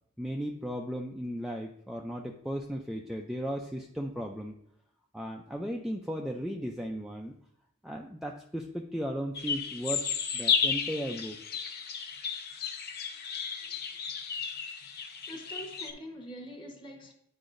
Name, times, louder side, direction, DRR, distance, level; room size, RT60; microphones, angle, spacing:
voice 1, 0.2-4.5 5.1-7.4 7.8-10.0 10.3-11.4, equal, ahead, 0.4 m, -36 dB
sound 1, 9.3-15.9, left 6 dB, 50° left, 0.7 m, -33 dB
voice 2, 15.2-17.1, equal, 25° left, 1.2 m, -45 dB
9.8 x 4.8 x 2.5 m
head